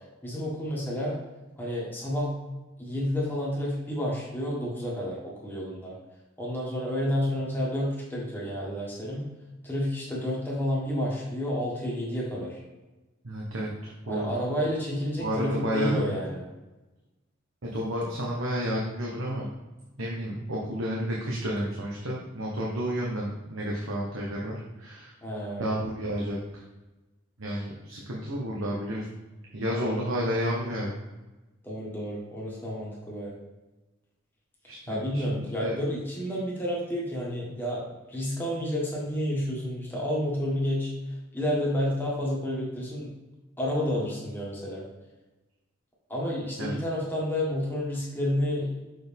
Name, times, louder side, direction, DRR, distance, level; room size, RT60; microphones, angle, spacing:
voice 1, 0.2-1.1 1.6-2.3 2.8-5.9 6.4-9.2 9.6-12.6 14.1-16.4 25.2-25.8 29.7-30.0 31.6-33.4 34.9-37.8 38.1-40.9 41.3-43.1 43.6-44.8 46.1-48.7, equal, 10° left, -5 dB, 1.6 m, -30 dB
voice 2, 13.2-14.3 15.2-16.0 17.7-19.5 20.0-25.1 25.6-26.6 27.4-29.0 29.5-30.9 34.7-35.2 35.6-35.7 46.6-46.7, equal, 80° right, -3 dB, 1.1 m, -31 dB
6.6 x 4.1 x 3.5 m, 1.1 s
head